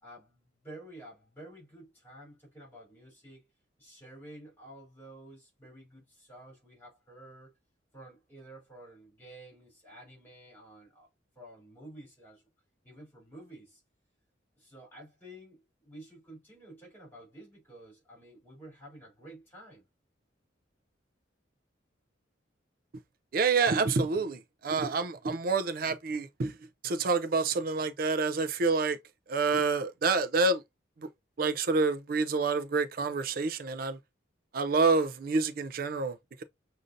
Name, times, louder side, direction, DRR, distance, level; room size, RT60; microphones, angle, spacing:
voice 1, 0.0-3.4 3.8-7.5 7.9-11.1 11.3-12.4 12.8-13.8 14.6-19.8, right 1 dB, 10° left, 3.0 m, -51 dB
voice 2, 23.3-26.6 26.8-29.0 29.3-30.6 31.4-34.0 34.5-36.4, right 4 dB, 50° right, 0.4 m, -28 dB
6.4 x 2.7 x 2.5 m
head